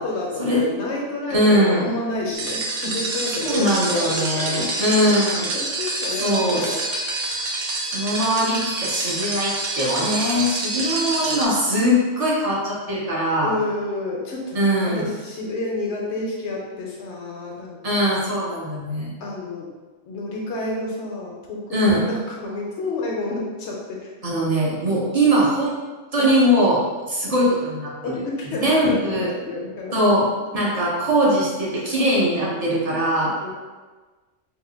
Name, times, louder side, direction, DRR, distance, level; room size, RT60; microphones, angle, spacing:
voice 1, 0.0-4.6 5.0-5.1 5.5-6.8 7.8-7.9 13.4-14.6 14.9-17.8 19.2-19.7 20.0-24.1 26.2-26.3 28.0-30.0 33.4-33.5, left 2 dB, 70° left, -2 dB, 1.0 m, -29 dB
voice 2, 1.3-1.9 3.4-5.5 6.2-6.7 7.9-13.5 14.5-15.0 17.8-19.2 21.7-22.0 24.2-25.8 26.1-29.3 29.9-30.3 30.5-33.3, equal, 35° right, -6 dB, 0.8 m, -21 dB
sound 1, 2.3-11.4, right 2 dB, 85° right, 1.0 m, -27 dB
2.8 x 2.5 x 3.8 m, 1.3 s
omnidirectional pair, 1.2 m